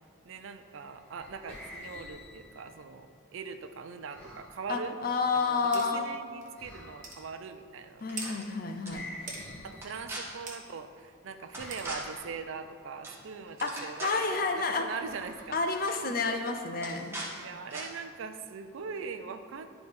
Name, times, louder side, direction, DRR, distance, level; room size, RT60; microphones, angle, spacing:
voice 1, 0.2-5.0 5.3-8.4 9.6-14.5 14.8-15.6 16.1-16.2 16.4-16.5 17.0-19.7, right 5 dB, 70° right, 9 dB, 0.4 m, -42 dB
sound 1, 0.8-2.8 4.1-4.6 6.6-7.3 8.9-10.4 11.5-12.5 15.0-16.2, left 1 dB, 10° left, 1.3 m, -48 dB
voice 2, 4.7-6.0 8.0-9.0 13.6-14.9 15.5-17.1, left 4 dB, 45° left, 5 dB, 0.5 m, -30 dB
sound 2, 5.7-5.9 6.4-6.5 7.0-7.2 8.2-8.3 9.3-9.4 10.5-10.6 11.7-11.9, right 4 dB, 40° right, 1.0 m, -40 dB
sound 3, 8.0-8.5 8.8-8.9 9.7-10.2 11.5-12.0 13.0-13.2 13.5-14.3 15.3-15.4 15.7-16.0 16.8-17.3 17.7-17.8, right 2 dB, 10° right, 1.1 m, -40 dB
11.5 x 4.0 x 3.4 m, 2.1 s
head